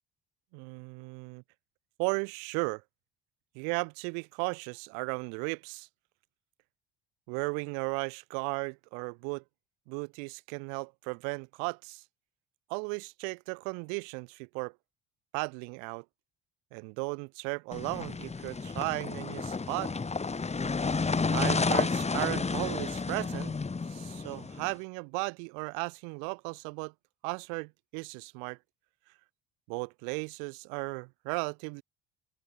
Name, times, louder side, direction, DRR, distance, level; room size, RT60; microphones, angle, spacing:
voice 1, 0.5-1.4 2.0-2.8 3.5-5.9 7.3-9.4 9.9-12.0 12.7-14.7 15.3-16.0 16.7-19.9 21.2-23.5 23.9-26.9 27.2-28.6 29.7-31.8, right 40 dB or more, 90° right, 1.5 m, -35 dB
sound 1, 17.7-24.7, left 4 dB, 20° left, 1.5 m, -31 dB
open air
supercardioid pair, 80°, 32 cm